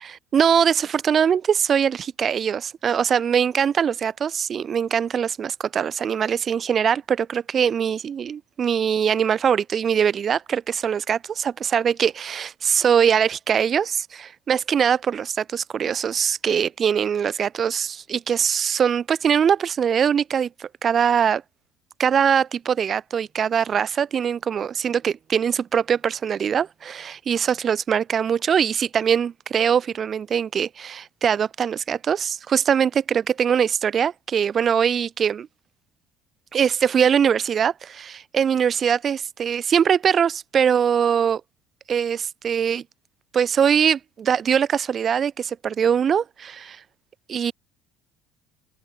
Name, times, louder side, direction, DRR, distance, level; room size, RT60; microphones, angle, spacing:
voice 1, 0.1-21.4 22.0-35.5 36.5-41.4 41.9-42.8 43.3-46.8 47.3-47.5, right 7 dB, 25° right, 0.3 m, -22 dB
cardioid pair, 175°, 0 cm